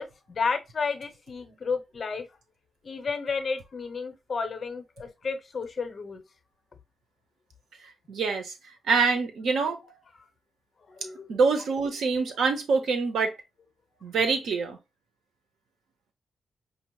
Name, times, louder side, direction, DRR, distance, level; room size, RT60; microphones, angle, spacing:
voice 1, 0.0-2.3 2.8-6.2 10.9-11.4, left 5 dB, 50° left, 0.8 m, -32 dB
voice 2, 8.1-8.5 8.9-9.8 11.3-13.4 14.0-14.8, right 4 dB, 90° right, 0.8 m, -25 dB
5.1 x 2.0 x 2.9 m
cardioid pair, 100°, 0 cm